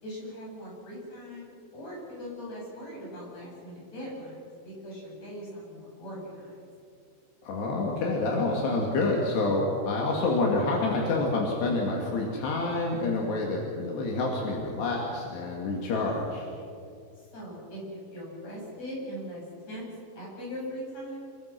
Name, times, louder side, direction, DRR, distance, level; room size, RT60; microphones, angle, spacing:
voice 1, 0.0-6.6 17.2-19.9 20.2-21.2, equal, 40° left, -4 dB, 9.2 m, -40 dB
voice 2, 7.4-16.5, left 2 dB, 80° left, -1 dB, 4.8 m, -28 dB
29.0 x 22.5 x 6.2 m, 2.3 s
omnidirectional pair, 4.8 m